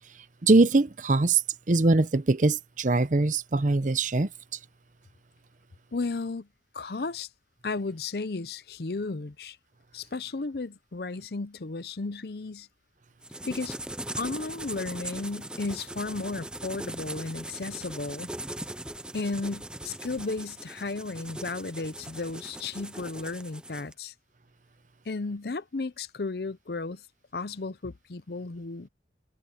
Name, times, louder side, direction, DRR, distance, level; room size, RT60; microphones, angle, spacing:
voice 1, 0.4-1.4 1.7-4.3, right 3 dB, 45° right, 0.7 m, -22 dB
voice 2, 5.9-6.5 6.7-7.3 7.6-9.6 9.9-12.7 13.5-13.8 14.2-18.3 19.1-24.1 25.0-27.0 27.3-28.9, left 3 dB, 60° left, 0.7 m, -34 dB
sound 1, 13.2-23.9, right 1 dB, 5° right, 0.4 m, -40 dB
head